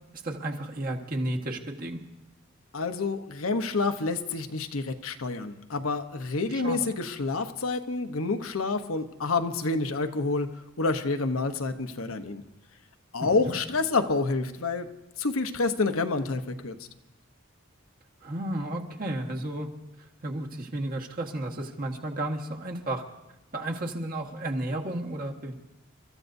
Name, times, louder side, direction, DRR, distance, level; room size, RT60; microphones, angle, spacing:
voice 1, 0.1-2.0 6.5-6.9 13.2-13.5 18.2-19.7 20.2-23.0 23.5-25.6, right 1 dB, 45° right, 1 dB, 1.5 m, -33 dB
voice 2, 2.7-10.5 10.8-12.4 13.1-14.9 15.2-16.8, left 3 dB, 80° left, 6 dB, 0.9 m, -28 dB
30.0 x 14.0 x 2.7 m, 0.94 s
head